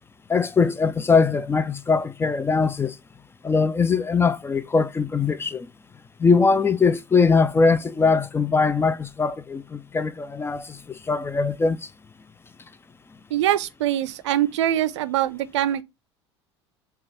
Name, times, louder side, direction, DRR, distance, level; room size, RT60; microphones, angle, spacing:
voice 1, 0.3-3.0 3.4-5.7 6.2-11.9, left 4 dB, 15° left, 0.4 m, -21 dB
voice 2, 13.3-15.8, right 12 dB, 75° right, 0.4 m, -23 dB
6.6 x 2.4 x 2.8 m
hypercardioid pair, 70°, 15 cm